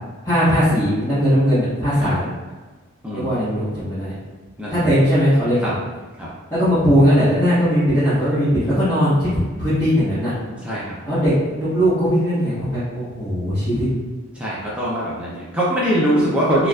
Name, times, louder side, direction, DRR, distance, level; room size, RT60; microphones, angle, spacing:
voice 1, 0.2-2.3 3.1-4.2 4.7-5.7 6.5-10.3 11.0-13.9, equal, 15° left, -16 dB, 1.1 m, -19 dB
voice 2, 14.4-16.7, equal, 5° right, -8 dB, 0.5 m, -22 dB
4.4 x 2.3 x 2.3 m, 1.3 s
head